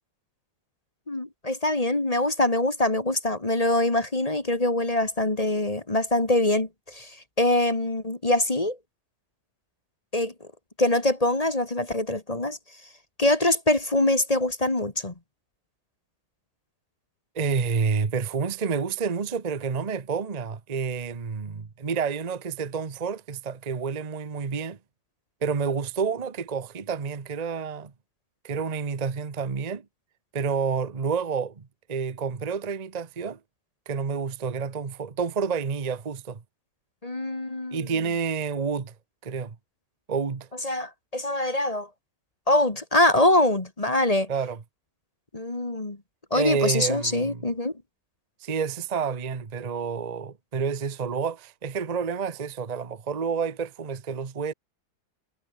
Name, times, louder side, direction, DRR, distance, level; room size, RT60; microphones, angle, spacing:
voice 1, 1.1-8.8 10.1-10.3 10.8-12.6 13.2-15.1 37.0-37.8 40.6-41.9 42.5-44.3 45.3-46.0 46.3-47.7, left 1 dB, 20° left, 1.6 m, -24 dB
voice 2, 17.3-24.8 25.4-27.9 28.4-29.8 30.3-33.4 33.9-36.4 37.7-38.9 39.2-39.6 40.1-40.5 44.3-44.6 46.3-47.5 48.4-54.5, right 5 dB, 30° right, 0.8 m, -29 dB
omnidirectional pair, 2.3 m